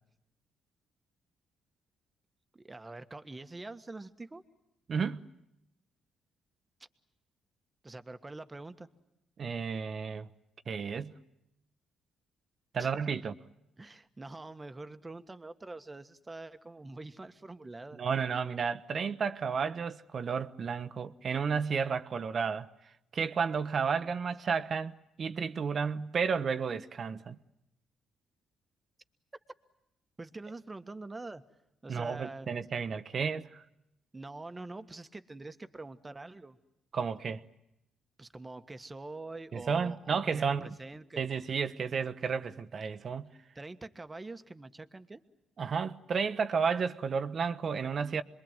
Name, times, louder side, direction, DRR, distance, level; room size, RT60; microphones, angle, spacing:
voice 1, 2.5-4.4 7.8-8.9 12.8-12.9 13.8-18.0 30.2-31.4 31.8-32.5 34.1-36.6 38.2-41.2 43.5-45.2, right 2 dB, 20° right, 1.5 m, -45 dB
voice 2, 4.9-5.2 9.4-10.3 10.7-11.1 12.7-13.3 18.0-22.7 23.1-24.9 25.2-27.4 31.9-33.6 36.9-37.4 39.5-40.7 41.2-43.3 45.6-48.2, right 6 dB, 50° right, 1.1 m, -32 dB
26.5 x 22.5 x 9.1 m
cardioid pair, 90°, 0 cm